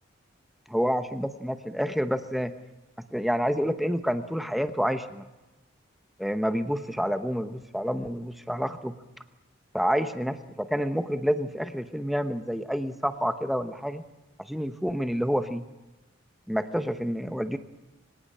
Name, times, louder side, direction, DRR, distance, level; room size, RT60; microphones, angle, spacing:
voice 1, 0.7-2.5 3.0-5.2 6.2-8.9 9.7-14.0 14.5-15.6 16.5-17.6, equal, ahead, 9 dB, 1.0 m, -28 dB
24.5 x 17.5 x 8.7 m, 1.1 s
head